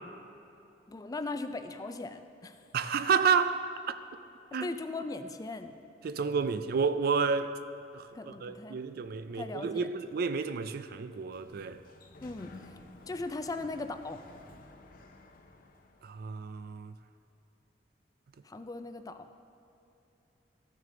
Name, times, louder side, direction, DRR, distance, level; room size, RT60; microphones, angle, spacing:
voice 1, 0.9-2.6 4.6-5.8 8.1-8.8 9.3-9.9 12.2-12.8 13.1-14.2 18.4-19.3, left 2 dB, 20° left, 0.3 m, -39 dB
voice 2, 2.7-4.0 4.5-4.7 6.0-7.6 7.9-11.8 16.0-16.9, right 5 dB, 55° right, 0.4 m, -30 dB
Sliding door, 11.0-16.2, left 2 dB, 50° left, 0.7 m, -53 dB
14.0 x 6.3 x 3.8 m
head